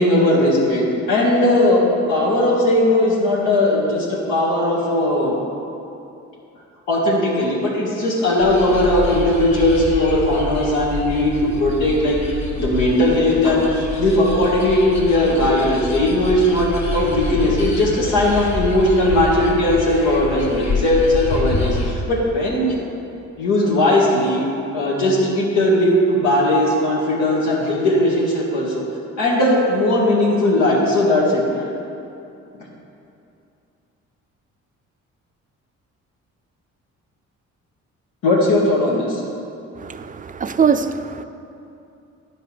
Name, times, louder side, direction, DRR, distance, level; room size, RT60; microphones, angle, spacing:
voice 1, 0.0-5.4 6.9-12.2 12.5-13.7 14.0-22.7 23.4-24.4 24.7-28.8 29.2-31.4 38.2-39.2, left 1 dB, 90° left, -4 dB, 2.2 m, -18 dB
sound 1, 8.4-21.9, left 2 dB, 65° left, 1.7 m, -27 dB
voice 2, 39.8-41.2, right 6 dB, 25° right, 10 dB, 0.4 m, -21 dB
9.7 x 5.3 x 6.3 m, 2.7 s
cardioid pair, 90°, 30 cm